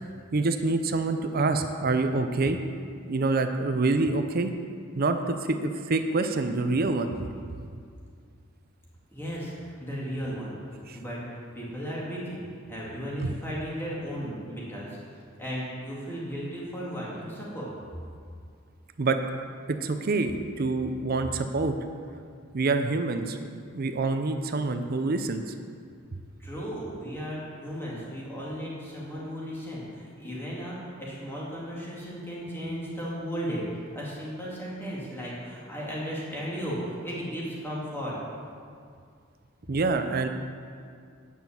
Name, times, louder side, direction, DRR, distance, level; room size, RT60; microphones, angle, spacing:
voice 1, 0.3-2.6 3.1-4.5 5.0-7.3 10.9-11.0 13.2-13.3 19.0-19.2 19.8-21.7 22.5-25.5 39.7-40.3, right 3 dB, 45° right, 7 dB, 0.5 m, -26 dB
voice 2, 9.1-10.6 10.9-12.4 12.7-17.7 26.4-38.1, equal, 10° left, -6 dB, 2.2 m, -35 dB
9.3 x 6.0 x 7.1 m, 2.2 s
head